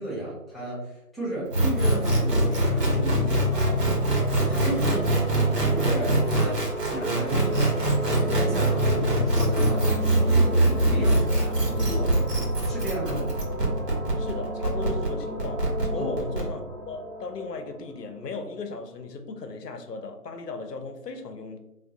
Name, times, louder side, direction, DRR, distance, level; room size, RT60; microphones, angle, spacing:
voice 1, 0.0-4.0 4.5-6.6 6.9-7.7 8.0-12.1 12.6-13.3 16.0-16.2, right 1 dB, ahead, 0.5 m, -33 dB
sound 1, 1.5-16.4, right 1 dB, 80° right, 1.0 m, -23 dB
sound 2, 3.2-18.7, right 1 dB, 50° right, 0.9 m, -34 dB
voice 2, 14.2-21.6, left 4 dB, 85° left, 0.6 m, -37 dB
2.2 x 2.2 x 2.6 m
figure-of-eight pair, 175°, 47 cm